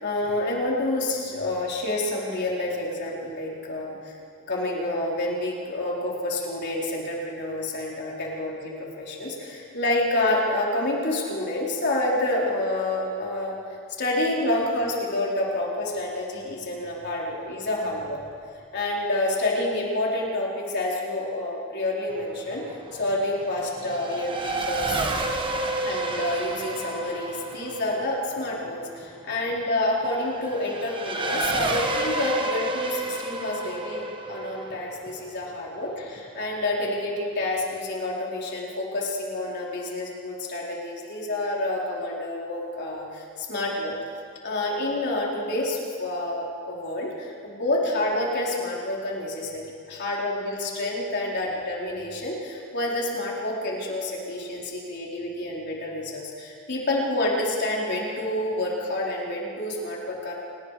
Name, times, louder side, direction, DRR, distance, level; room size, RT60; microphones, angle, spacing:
voice 1, 0.0-4.2 4.5-13.6 14.0-18.2 18.7-25.0 25.8-43.9 44.4-49.6 49.9-60.3, left 1 dB, 50° left, -3 dB, 4.3 m, -28 dB
Race car auto racing / Accelerating revving vroom, 22.1-36.2, right 2 dB, 25° right, 1.5 m, -31 dB
29.0 x 19.0 x 5.0 m, 2.3 s
head